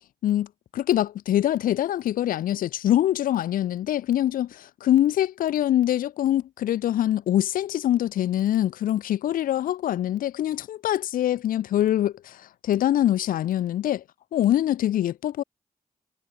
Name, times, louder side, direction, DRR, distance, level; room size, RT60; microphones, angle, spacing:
voice 1, 0.7-14.0 14.3-15.4, left 12 dB, 85° left, 0.9 m, -24 dB
supercardioid pair, 45°, 14 cm